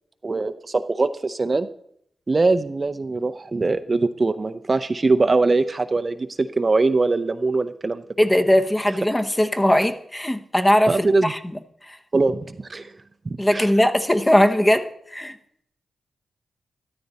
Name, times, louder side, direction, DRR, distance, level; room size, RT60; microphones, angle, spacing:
voice 1, 0.2-1.7 2.3-8.0 10.9-11.3 12.1-12.9 13.2-13.7, right 3 dB, 40° right, 10 dB, 0.6 m, -22 dB
voice 2, 8.2-11.6 11.9-12.0 13.4-15.3, left 1 dB, 15° left, 7 dB, 0.9 m, -20 dB
13.0 x 12.5 x 4.1 m, 0.70 s
cardioid pair, 60°, 0 cm